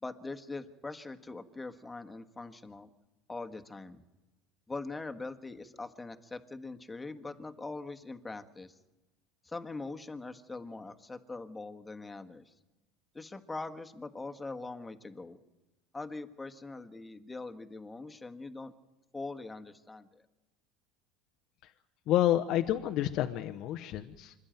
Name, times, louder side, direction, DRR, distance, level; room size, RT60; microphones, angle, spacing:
voice 1, 0.0-2.9 3.3-4.0 4.7-8.7 9.4-12.5 13.1-15.4 15.9-18.7 19.1-20.2, left 3 dB, 15° left, 6 dB, 1.5 m, -42 dB
voice 2, 22.1-24.3, left 13 dB, 60° left, 6 dB, 0.9 m, -29 dB
26.0 x 11.5 x 9.1 m, 1.1 s
hypercardioid pair, 80°, 0 cm